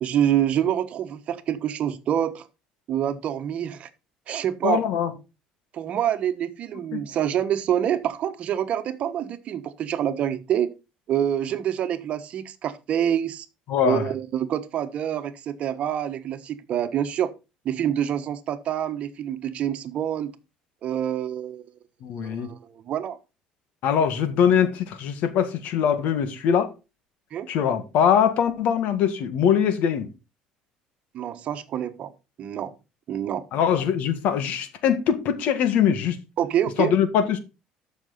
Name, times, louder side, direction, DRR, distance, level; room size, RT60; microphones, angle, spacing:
voice 1, 0.0-2.5 2.9-3.9 4.3-5.1 5.7-10.7 11.1-13.5 13.8-17.3 17.6-20.3 20.8-21.7 22.2-23.2 27.3-27.5 31.1-32.1 32.4-32.7 33.1-33.4 36.4-36.9, right 10 dB, 50° right, 1.3 m, -26 dB
voice 2, 4.6-5.1 6.9-7.0 13.7-14.0 22.0-22.5 23.8-26.7 27.5-30.1 33.5-36.2 36.8-37.4, left 8 dB, 70° left, 1.8 m, -22 dB
13.0 x 6.3 x 4.1 m
cardioid pair, 110°, 3 cm